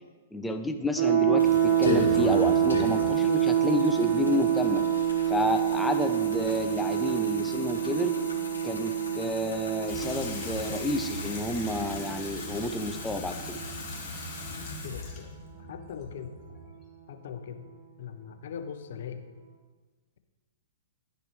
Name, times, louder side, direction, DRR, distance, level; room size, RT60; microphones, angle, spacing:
voice 1, 0.3-4.8 5.3-8.1 8.6-13.6, left 2 dB, 5° left, 5 dB, 0.4 m, -30 dB
sound 1, 1.0-14.7, right 9 dB, 45° right, 1.2 m, -27 dB
sound 2, 1.4-15.0, left 3 dB, 80° left, 1.3 m, -38 dB
Water tap faucet / Sink (filling or washing), 9.8-16.9, left 2 dB, 25° left, 1.3 m, -40 dB
voice 2, 14.6-15.3 15.7-16.4 17.1-17.7 18.0-19.2, left 7 dB, 55° left, 8 dB, 0.6 m, -40 dB
10.5 x 4.8 x 3.1 m, 1.3 s
figure-of-eight pair, 110°, 0 cm